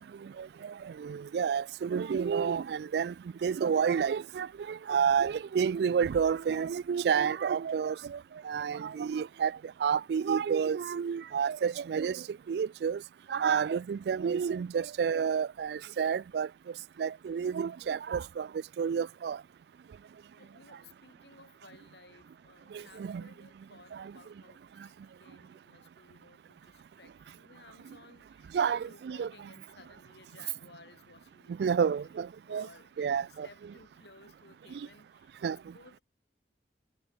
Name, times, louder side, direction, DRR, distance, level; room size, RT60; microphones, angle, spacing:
voice 1, 0.4-3.1 3.4-8.2 8.4-13.0 13.3-16.5 17.0-18.5 18.8-19.4 22.7-23.2 23.9-24.1 28.5-29.3 31.6-32.7 33.0-33.5 35.4-35.6, right 7 dB, 70° right, 0.3 m, -30 dB
voice 2, 5.1-5.5 20.4-36.0, left 3 dB, 80° left, 6.1 m, -58 dB
sound 1, 29.4-34.0, right 6 dB, 90° right, 7.3 m, -70 dB
head